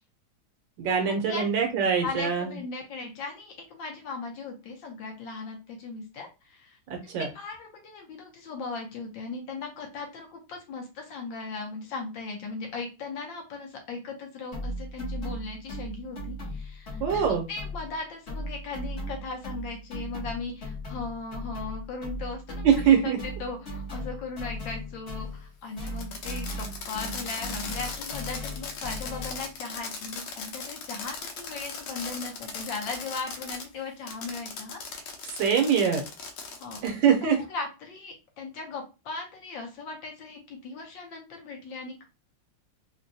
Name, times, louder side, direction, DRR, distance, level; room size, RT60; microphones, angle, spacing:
voice 1, 0.8-2.5 6.9-7.3 17.0-17.5 22.6-23.2 35.2-36.0 36.8-37.4, right 7 dB, 70° right, 3 dB, 1.3 m, -23 dB
voice 2, 2.0-6.8 7.0-22.6 23.0-34.8 36.6-36.8 37.5-42.0, left 3 dB, 70° left, 2 dB, 1.5 m, -38 dB
sound 1, 14.5-18.0 18.3-25.5 25.8-29.5, equal, 40° left, 1.1 m, -37 dB
Fireworks, 25.8-33.6 34.1-36.9, left 5 dB, 85° left, 1.5 m, -38 dB
3.8 x 2.2 x 2.6 m, 0.28 s
omnidirectional pair, 2.2 m